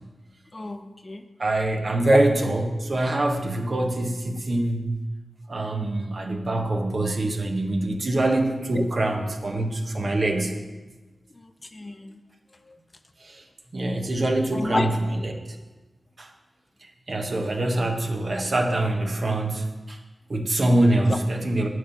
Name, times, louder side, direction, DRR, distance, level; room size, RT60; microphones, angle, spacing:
voice 1, 0.5-1.2 2.1-2.2 8.7-8.8 9.5-9.7 11.7-12.2 14.5-14.9 21.1-21.2, left 2 dB, 40° left, 8 dB, 0.6 m, -28 dB
voice 2, 1.4-5.0 5.5-10.5 13.2-13.4 13.7-15.3 16.2-16.3 17.1-20.0 20.3-21.7, right 1 dB, 60° right, 3 dB, 1.1 m, -24 dB
6.5 x 5.4 x 7.0 m, 1.2 s
cardioid pair, 45°, 0 cm